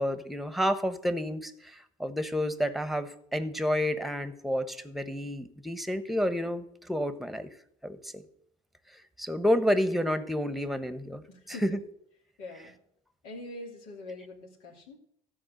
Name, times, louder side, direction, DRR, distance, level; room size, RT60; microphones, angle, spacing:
voice 1, 0.0-7.5 7.8-8.2 9.2-11.2 11.6-11.8, equal, ahead, 12 dB, 1.1 m, -30 dB
voice 2, 11.3-11.8 12.4-12.8 13.2-15.0, left 2 dB, 85° left, 1 dB, 2.7 m, -44 dB
13.5 x 4.7 x 7.8 m, 0.71 s
hypercardioid pair, 75°, 18 cm